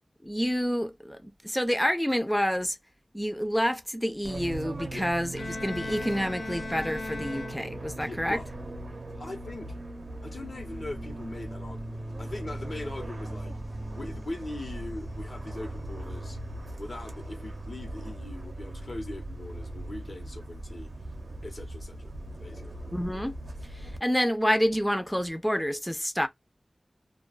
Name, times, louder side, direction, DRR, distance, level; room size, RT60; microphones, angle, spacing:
voice 1, 0.2-2.8 3.1-8.4 22.9-23.3 23.8-26.3, equal, 10° left, 0.5 m, -28 dB
Fixed-wing aircraft airplane, 4.2-24.0, right 1 dB, 75° right, 0.6 m, -39 dB
Bowed string instrument, 5.4-8.1, left 3 dB, 85° left, 0.4 m, -38 dB
voice 2, 8.0-8.5 9.1-9.7 10.2-13.6 13.9-16.4 16.8-20.9 21.4-22.1 22.4-22.7, left 2 dB, 70° left, 0.9 m, -41 dB
2.3 x 2.3 x 2.3 m
wide cardioid pair, 70°, 0 cm